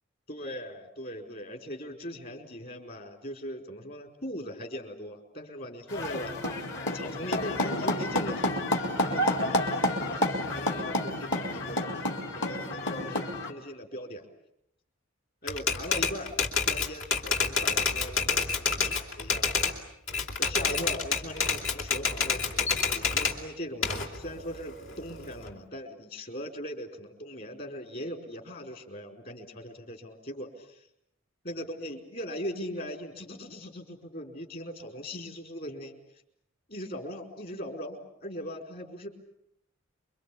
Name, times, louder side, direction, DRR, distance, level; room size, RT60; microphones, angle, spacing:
voice 1, 0.3-6.3 6.8-11.9 12.3-14.3 15.4-16.3 16.7-19.5 20.4-30.8 31.4-35.9 36.7-39.1, equal, 50° left, 4 dB, 4.6 m, -39 dB
sound 1, 5.9-13.5, left 1 dB, 65° left, 4.0 m, -30 dB
Typewriter, 15.5-19.8 20.1-23.4 23.8-25.5, left 5 dB, 80° left, 3.2 m, -28 dB
28.0 x 24.0 x 8.6 m, 0.78 s
head